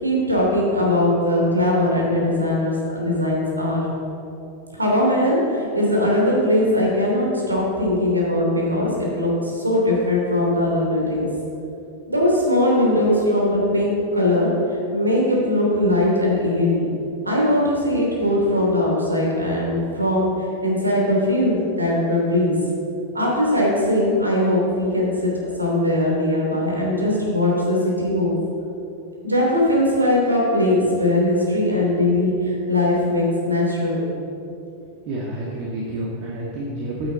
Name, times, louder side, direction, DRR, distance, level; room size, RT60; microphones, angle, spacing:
voice 1, 0.0-3.8 4.7-11.3 12.1-14.5 14.9-16.9 17.2-20.3 20.6-22.6 23.1-28.4 29.2-34.1, left 1 dB, 80° right, -2 dB, 2.9 m, -20 dB
voice 2, 34.8-37.1, right 1 dB, 45° right, -3 dB, 1.7 m, -29 dB
15.0 x 9.0 x 4.0 m, 2.8 s
figure-of-eight pair, 90°, 0 cm